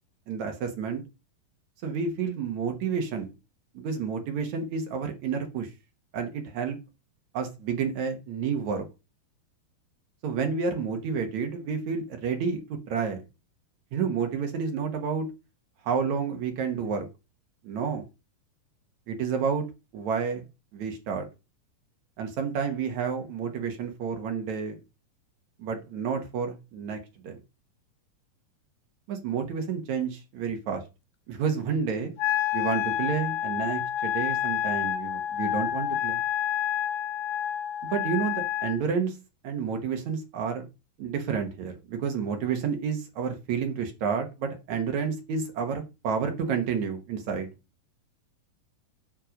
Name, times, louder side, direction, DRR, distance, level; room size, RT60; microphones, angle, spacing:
voice 1, 0.3-1.0 1.8-3.3 3.7-5.7 6.1-6.8 7.3-8.9 10.2-13.2 13.9-15.3 15.8-17.1 17.6-18.0 19.1-19.7 19.9-20.4 20.7-21.3 22.2-24.8 25.6-27.4 29.1-30.8 31.3-32.1 32.5-36.2 37.8-39.2 39.4-40.7 41.0-47.5, right 6 dB, 60° right, 2.4 m, -30 dB
Wind instrument woodwind instrument, 32.2-38.8, left 11 dB, 75° left, 2.2 m, -29 dB
7.6 x 6.8 x 5.1 m
omnidirectional pair, 4.2 m